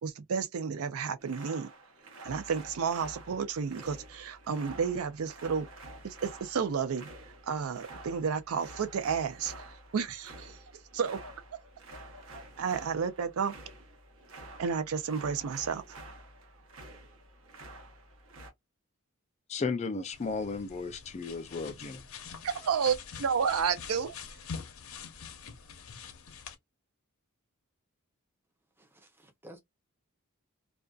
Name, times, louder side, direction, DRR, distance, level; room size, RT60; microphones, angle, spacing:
voice 1, 0.0-1.7 2.2-5.7 6.0-7.1 7.5-9.5 9.9-10.6 10.9-11.2 12.6-13.5 14.6-15.8 22.4-24.1, right 6 dB, 80° right, 0.4 m, -31 dB
sound 1, 1.2-18.5, right 2 dB, 65° right, 0.8 m, -49 dB
voice 2, 19.5-22.0, left 4 dB, 30° left, 0.3 m, -34 dB
sound 2, 20.1-26.6, left 6 dB, 75° left, 0.6 m, -45 dB
voice 3, 28.8-29.6, right 1 dB, 10° right, 0.6 m, -53 dB
2.5 x 2.3 x 2.3 m
head